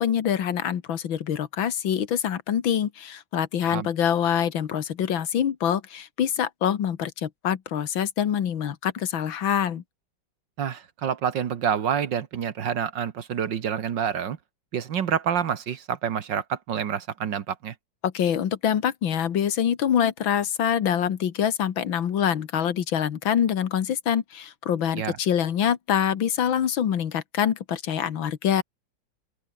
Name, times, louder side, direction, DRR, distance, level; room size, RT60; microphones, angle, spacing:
voice 1, 0.0-9.8 18.0-28.6, left 9 dB, 90° left, 2.2 m, -25 dB
voice 2, 10.6-14.4 14.7-17.7 25.0-25.2, right 8 dB, 70° right, 2.0 m, -28 dB
open air
omnidirectional pair, 2.1 m